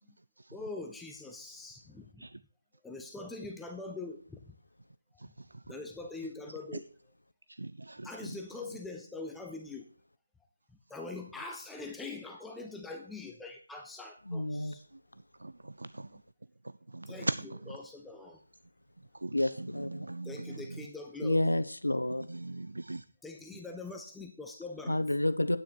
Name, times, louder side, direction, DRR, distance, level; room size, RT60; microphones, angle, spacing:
voice 1, 0.5-2.3 2.8-4.5 5.7-6.9 8.0-9.8 10.9-14.8 16.1-16.2 17.1-18.4 20.2-21.6 23.2-25.0, left 3 dB, 5° left, 0.5 m, -43 dB
voice 2, 7.6-8.1 15.4-15.5 16.0-16.1 16.9-17.3 19.2-20.3 22.3-23.0, right 2 dB, 70° right, 0.3 m, -38 dB
voice 3, 14.3-14.7 19.3-20.1 21.2-22.3 24.9-25.6, left 1 dB, 80° left, 0.9 m, -29 dB
9.3 x 8.8 x 4.5 m
figure-of-eight pair, 155°, 0 cm